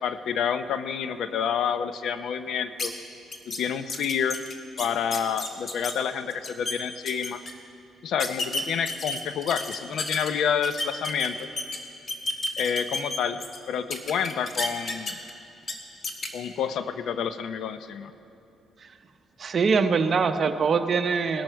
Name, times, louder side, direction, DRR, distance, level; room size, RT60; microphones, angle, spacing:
voice 1, 0.0-2.9 3.5-4.4 4.8-7.4 8.0-11.4 12.6-13.4 13.7-15.1 16.3-18.1, left 7 dB, 75° left, 11 dB, 0.7 m, -28 dB
sound 1, 2.8-2.9 3.3-3.6 3.9-5.9 6.3-6.7 7.1-7.5 8.2-10.3 10.6-11.8 12.1-13.6 13.9-15.3 15.6-15.7 16.0-16.3, left 2 dB, 40° left, 1.6 m, -31 dB
voice 2, 19.4-21.4, right 5 dB, 45° right, 8 dB, 0.8 m, -23 dB
19.5 x 11.5 x 4.6 m, 2.7 s
cardioid pair, 90°, 0 cm